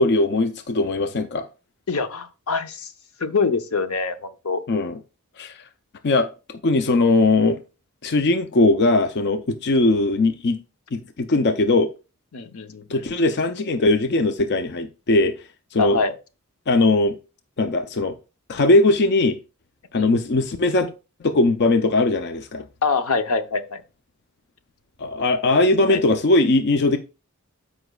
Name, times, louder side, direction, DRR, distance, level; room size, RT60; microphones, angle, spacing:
voice 1, 0.0-1.5 4.7-5.0 5.4-5.6 6.0-7.6 8.0-10.6 10.9-11.9 12.9-15.3 15.7-16.0 16.7-17.2 17.6-18.1 18.5-19.4 19.9-20.9 21.2-22.6 25.0-27.0, left 2 dB, 50° left, 0.5 m, -19 dB
voice 2, 1.9-2.9 3.2-4.6 12.3-13.0 15.8-16.1 19.9-20.1 22.8-23.8 25.8-26.0, left 4 dB, 80° left, 0.7 m, -24 dB
13.0 x 5.1 x 2.3 m
head